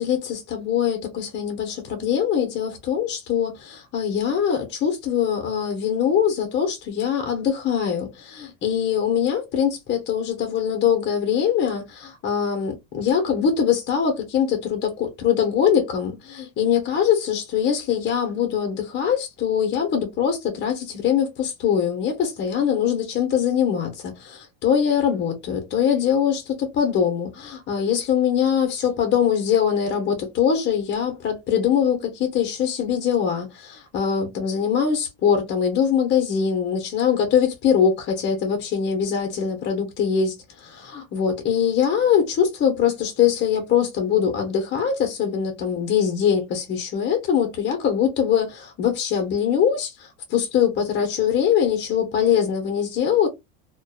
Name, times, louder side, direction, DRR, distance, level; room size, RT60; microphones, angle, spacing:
voice 1, 0.0-53.3, left 8 dB, 35° left, 0.7 m, -22 dB
2.6 x 2.2 x 2.3 m
supercardioid pair, 130°, 31 cm